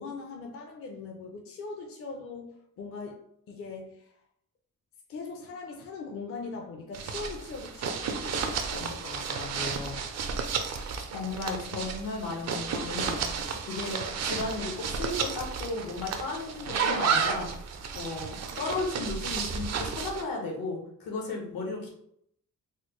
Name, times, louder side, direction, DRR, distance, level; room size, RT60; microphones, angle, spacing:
voice 1, 0.0-3.2 3.5-4.1 5.1-10.0, left 4 dB, 40° left, 1 dB, 0.5 m, -40 dB
sound 1, 6.9-20.2, right 6 dB, 50° right, 0.4 m, -32 dB
voice 2, 11.1-13.3 13.7-17.5 17.9-21.9, left 3 dB, 80° left, 0 dB, 1.2 m, -35 dB
4.1 x 2.1 x 3.0 m, 0.70 s
wide cardioid pair, 145°, 35 cm